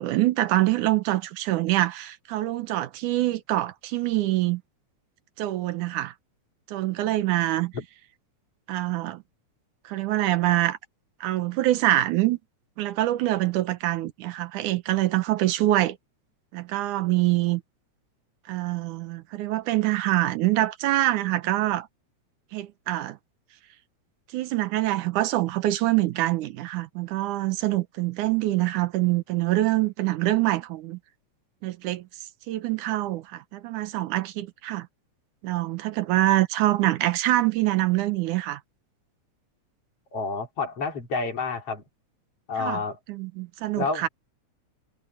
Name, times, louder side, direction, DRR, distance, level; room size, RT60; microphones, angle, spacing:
voice 1, 0.0-4.6 5.4-6.1 6.7-7.7 8.7-9.2 9.9-10.8 11.2-12.4 12.8-16.0 16.5-17.6 18.5-21.9 22.5-23.2 24.3-31.0 31.6-32.1 32.5-34.9 35.4-38.6 42.6-42.8 43.1-44.1, right 15 dB, 90° right, 2.5 m, -25 dB
voice 2, 40.1-41.8 42.5-43.0 43.8-44.1, left 4 dB, 50° left, 4.4 m, -29 dB
omnidirectional pair, 3.4 m